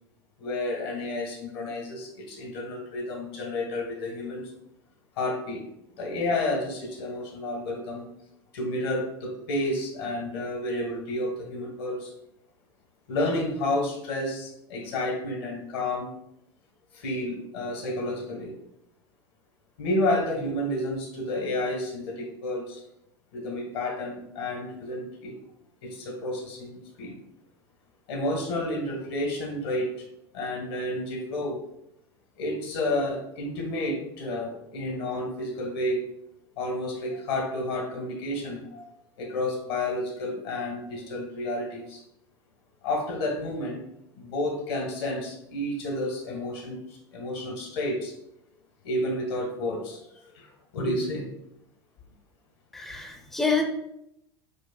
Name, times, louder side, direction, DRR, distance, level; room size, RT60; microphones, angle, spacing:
voice 1, 0.4-4.5 5.2-5.6 6.0-8.1 8.5-12.1 13.1-16.1 16.9-18.5 19.8-22.8 23.3-25.3 25.8-27.1 28.1-30.0 30.3-31.6 32.4-36.0 36.6-38.8 39.2-42.0 42.8-43.8 44.2-48.1 48.8-51.2, left 1 dB, 65° left, 1 dB, 1.3 m, -30 dB
voice 2, 52.7-53.6, left 4 dB, ahead, 1 dB, 0.6 m, -27 dB
7.0 x 2.4 x 2.3 m, 0.79 s
figure-of-eight pair, 80°, 14 cm